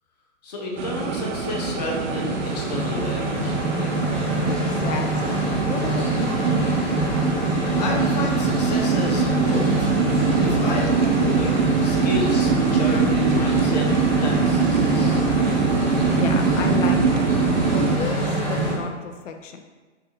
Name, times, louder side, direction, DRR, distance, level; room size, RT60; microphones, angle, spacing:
voice 1, 0.4-3.9 7.8-9.9 10.4-13.9 14.2-15.2, left 1 dB, 35° left, -1 dB, 0.6 m, -31 dB
sound 1, 0.8-18.0, right 5 dB, 70° right, 0.6 m, -23 dB
sound 2, 1.0-18.7, right 1 dB, 15° left, 1.0 m, -25 dB
voice 2, 4.5-6.5 16.1-17.3 17.6-19.6, left 5 dB, 80° left, 5 dB, 0.5 m, -33 dB
5.7 x 2.4 x 2.8 m, 1.3 s
hypercardioid pair, 170°, 37 cm